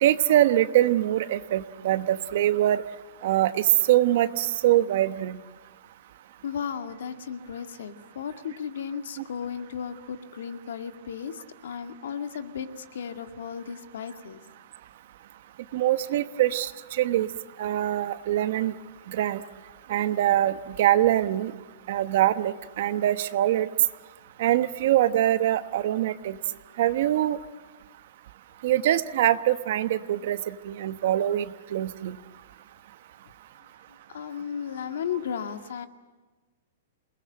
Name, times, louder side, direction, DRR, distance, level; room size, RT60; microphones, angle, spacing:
voice 1, 0.0-2.8 3.2-5.4 15.7-16.7 17.0-17.3 17.6-18.7 19.1-19.4 19.9-21.5 21.9-23.7 24.4-26.4 26.8-27.4 28.6-32.2, right 13 dB, 45° right, 12 dB, 1.1 m, -23 dB
voice 2, 6.4-14.4 34.1-35.9, left 7 dB, 70° left, 7 dB, 2.1 m, -35 dB
28.5 x 20.5 x 8.8 m, 1.3 s
hypercardioid pair, 175°, 0 cm